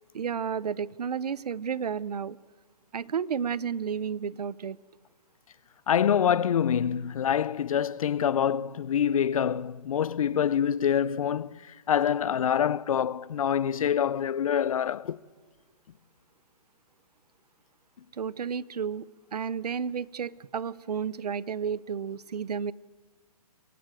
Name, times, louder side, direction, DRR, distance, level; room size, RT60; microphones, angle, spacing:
voice 1, 0.1-2.4 2.9-4.8 18.2-19.0 19.3-22.7, right 7 dB, 80° right, 0.8 m, -32 dB
voice 2, 5.9-11.6 11.9-15.2, left 8 dB, 60° left, 0.7 m, -26 dB
23.5 x 17.0 x 9.0 m
hypercardioid pair, 155°, 20 cm